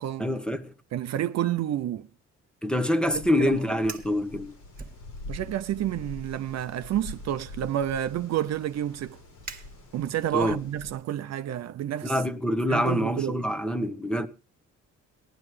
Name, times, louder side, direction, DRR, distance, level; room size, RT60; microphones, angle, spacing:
voice 1, 0.2-0.7 2.6-4.5 10.3-10.6 12.0-14.3, equal, 5° left, 1.1 m, -26 dB
voice 2, 0.9-2.1 3.4-3.6 5.3-9.2 9.9-12.2 12.7-13.4, right 11 dB, 60° right, 0.6 m, -29 dB
Wind, 3.0-10.9, left 2 dB, 80° left, 5.5 m, -45 dB
Fire, 3.9-4.2 4.7-5.5 5.9-6.2 6.9-10.3, right 4 dB, 30° right, 1.7 m, -46 dB
18.0 x 11.0 x 3.3 m
cardioid pair, 90°, 30 cm